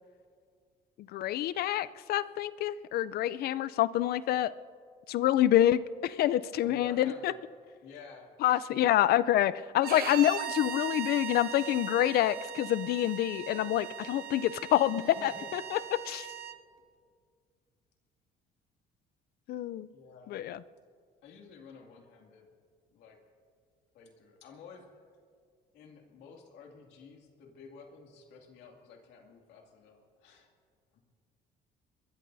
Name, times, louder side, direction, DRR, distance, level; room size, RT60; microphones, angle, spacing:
voice 1, 1.0-4.5 5.1-7.3 8.4-16.3 19.5-19.9 20.3-20.6, left 12 dB, 65° left, 16 dB, 0.5 m, -27 dB
voice 2, 6.6-7.4 7.8-8.6 15.1-15.5 19.9-20.4 21.2-22.5 22.9-23.2 23.9-24.9 25.7-30.5 30.9-31.0, left 5 dB, 85° left, 2 dB, 2.5 m, -51 dB
Bowed string instrument, 9.8-16.6, right 10 dB, 65° right, 1.1 m, -39 dB
24.0 x 22.0 x 2.7 m, 2.1 s
cardioid pair, 110°, 17 cm